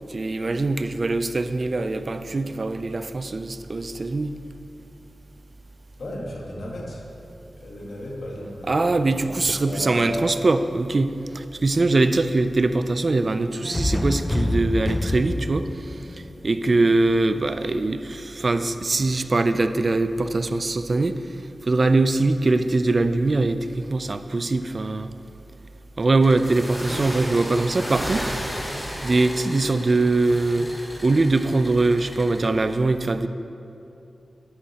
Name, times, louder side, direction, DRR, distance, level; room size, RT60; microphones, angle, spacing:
voice 1, 0.1-4.3 8.7-15.9 16.4-21.2 21.7-25.1 26.0-28.3 29.0-30.7 31.0-33.3, right 2 dB, 45° right, 11 dB, 0.4 m, -22 dB
voice 2, 6.0-7.1 7.6-8.9 9.2-10.2, left 1 dB, 70° left, -3 dB, 1.6 m, -35 dB
sound 1, 13.6-17.5, left 1 dB, 25° left, 0.4 m, -27 dB
sound 2, 26.2-32.5, equal, 5° left, 1.2 m, -34 dB
9.8 x 8.2 x 2.9 m, 2.8 s
cardioid pair, 60°, 0 cm